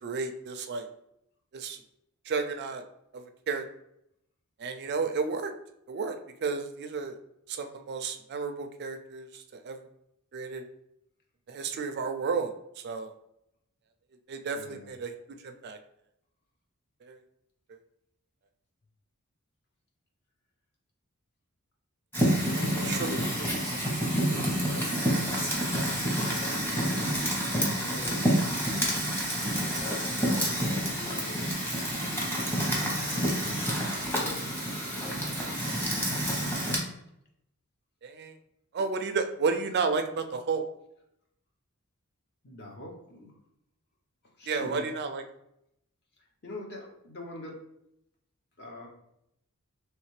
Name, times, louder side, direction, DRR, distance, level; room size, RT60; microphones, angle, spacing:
voice 1, 0.0-0.9 1.5-1.8 2.3-2.8 3.1-3.6 4.6-5.5 5.9-6.2 6.4-7.2 7.5-9.9 10.3-10.6 11.5-12.5 12.8-13.1 14.3-15.1 15.4-15.8 17.0-17.2 17.7-17.8 22.8-23.3 29.9-30.0 30.2-30.3 38.0-38.3 38.7-40.6 44.5-45.2, right 4 dB, 50° right, 6 dB, 0.4 m, -32 dB
voice 2, 14.5-14.9 22.5-23.5 23.9-25.7 26.1-26.9 27.5-28.2 29.4-29.7 30.5-34.6 35.7-36.6 42.4-43.3 44.4-44.8 46.4-47.7 48.6-48.9, left 1 dB, 50° left, 0 dB, 0.9 m, -45 dB
Fire, 22.1-36.8, equal, 10° left, 0.9 m, -28 dB
3.2 x 3.2 x 3.2 m, 0.78 s
head